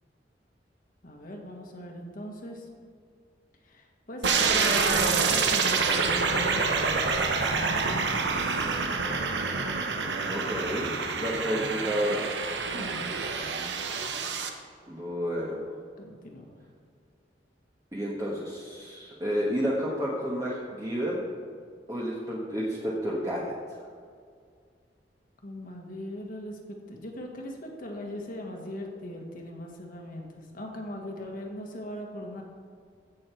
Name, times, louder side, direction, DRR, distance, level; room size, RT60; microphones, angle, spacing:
voice 1, 1.0-2.7 3.6-8.8 12.6-13.1 16.0-16.5 25.4-32.4, left 1 dB, 55° left, 1 dB, 1.6 m, -40 dB
sound 1, 4.2-14.5, right 4 dB, 85° right, 1.0 m, -27 dB
sound 2, 4.8-9.8, right 1 dB, 35° right, 2.4 m, -46 dB
voice 2, 10.3-12.4 14.9-15.6 17.9-21.2 21.9-23.5, equal, 20° right, -5 dB, 1.3 m, -30 dB
16.0 x 6.5 x 4.6 m, 2.1 s
head